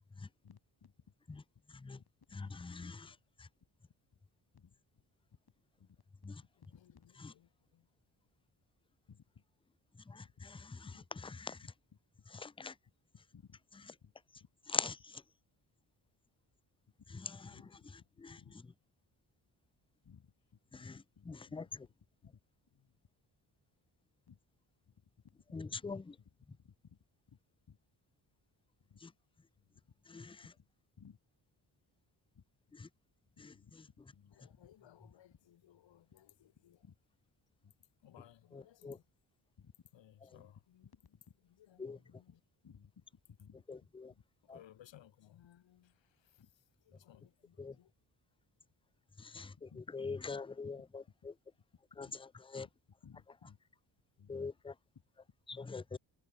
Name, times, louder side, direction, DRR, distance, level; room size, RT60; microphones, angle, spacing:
voice 1, 0.4-0.9 2.0-3.1 4.5-4.7 5.3-5.4 5.8-6.0 6.7-7.1 9.1-9.4 10.2-10.5 10.9-11.0 13.3-13.6 14.0-14.5 17.0-18.5 20.0-21.9 22.2-22.4 22.7-22.9 24.3-24.4 24.9-27.0 27.3-27.4 27.7-27.8 28.8-29.0 29.5-30.7 31.0-31.2 32.3-32.8 33.2-37.0 37.6-37.7 38.9-39.0 39.6-39.7 40.4-40.5 41.1-41.3 42.3-42.4 42.6-43.6 44.1-44.2 46.4-46.5 49.3-49.8 52.0-52.2 52.6-52.7 53.0-53.6 54.2-54.3, left 7 dB, 55° left, 8.0 m, -62 dB
voice 2, 2.3-2.9 6.2-6.4 10.1-10.2 11.4-11.6 12.4-12.7 14.7-15.0 20.8-20.9 21.3-21.6 25.5-26.0 30.1-30.4 38.5-39.0 41.8-42.0 43.7-44.1 44.5-44.6 47.6-47.8 49.4-49.5 49.9-51.0 52.0-52.1 52.5-52.7 54.3-54.7 55.6-56.0, left 4 dB, 15° left, 0.4 m, -41 dB
voice 3, 7.4-7.9 34.3-36.8 38.0-39.0 39.9-40.9 41.7-42.3 44.5-46.4 46.9-47.9, left 11 dB, 75° left, 1.2 m, -62 dB
wide cardioid pair, 140°, 45 cm